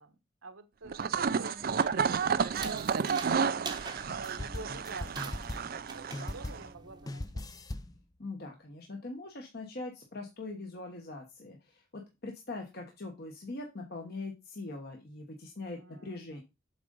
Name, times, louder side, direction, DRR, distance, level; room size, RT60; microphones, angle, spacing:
voice 1, 0.0-7.5 15.7-16.4, right 3 dB, 75° right, 1.1 m, -48 dB
sound 1, 0.9-6.7, right 6 dB, 45° right, 0.4 m, -31 dB
sound 2, 1.6-7.2, right 4 dB, 20° right, 0.8 m, -46 dB
sound 3, 4.0-5.8 6.1-6.8 7.1-8.0, left 1 dB, 20° left, 0.4 m, -40 dB
voice 2, 8.2-16.4, left 2 dB, 50° left, 1.2 m, -42 dB
7.9 x 3.8 x 5.3 m
head